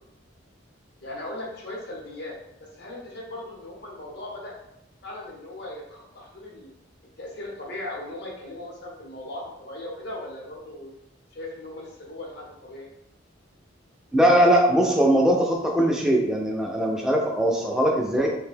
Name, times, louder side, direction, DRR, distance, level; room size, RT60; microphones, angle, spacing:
voice 1, 1.0-4.5 5.0-6.7 7.2-10.9 11.3-12.9, left 1 dB, 60° left, -3 dB, 0.8 m, -38 dB
voice 2, 14.1-18.3, right 1 dB, 5° right, -1 dB, 0.4 m, -20 dB
2.6 x 2.2 x 3.2 m, 0.80 s
head